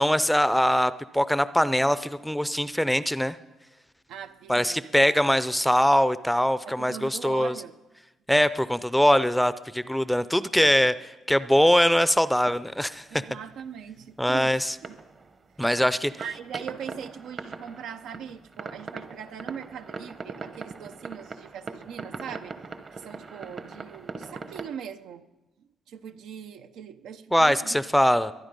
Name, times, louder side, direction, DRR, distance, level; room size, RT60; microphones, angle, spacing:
voice 1, 0.0-3.4 4.5-7.5 8.3-13.2 14.2-14.7 15.6-16.1 27.3-28.3, equal, 5° left, 15 dB, 0.5 m, -22 dB
voice 2, 4.1-5.1 6.7-7.7 13.1-15.0 16.2-22.6 22.9-25.2 25.6-27.8, right 8 dB, 85° right, 8 dB, 0.7 m, -40 dB
sound 1, 12.1-13.7 14.7-24.7, right 4 dB, 45° right, 1.0 m, -41 dB
23.5 x 9.5 x 5.3 m, 1.1 s
cardioid pair, 90°, 0 cm